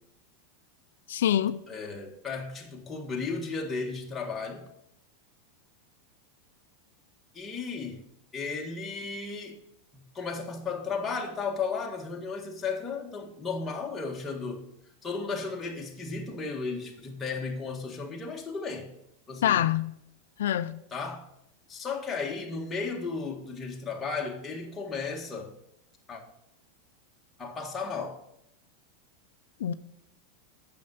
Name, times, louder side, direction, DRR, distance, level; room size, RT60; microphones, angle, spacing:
voice 1, 1.1-1.6 19.4-19.9 20.4-20.8 29.6-29.7, left 11 dB, 85° left, 0.3 m, -25 dB
voice 2, 1.7-4.7 7.3-8.0 8.3-9.6 9.9-14.6 15.0-18.9 19.3-19.6 20.9-21.3 21.7-25.5 26.1-26.2 27.4-28.2, left 4 dB, 15° left, 1.7 m, -34 dB
8.5 x 6.6 x 5.6 m
supercardioid pair, 135°, 0 cm